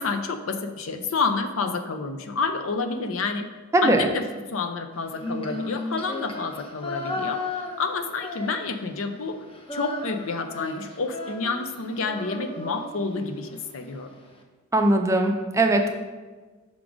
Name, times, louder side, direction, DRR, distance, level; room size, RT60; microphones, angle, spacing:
voice 1, 0.0-3.5 3.8-4.2 4.5-9.4 9.7-14.1, left 4 dB, 70° left, 7 dB, 0.5 m, -29 dB
voice 2, 3.7-4.1 14.7-15.9, right 2 dB, 15° right, 4 dB, 0.4 m, -20 dB
Female singing, 5.1-9.0 9.3-13.6, left 2 dB, 25° left, 0.7 m, -35 dB
6.0 x 3.7 x 4.9 m, 1.3 s
head